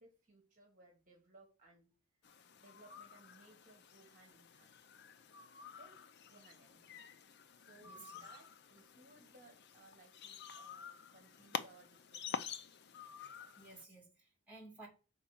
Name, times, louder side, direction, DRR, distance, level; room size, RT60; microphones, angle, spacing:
voice 1, 0.0-1.9 2.3-4.8 5.8-6.0 6.3-7.1 7.5-12.5, right 2 dB, 35° right, 1.5 m, -63 dB
sound 1, 2.2-13.8, left 6 dB, 50° left, 0.5 m, -49 dB
voice 2, 7.8-8.2 13.6-14.9, right 2 dB, 5° right, 2.4 m, -55 dB
4.8 x 4.2 x 5.8 m
head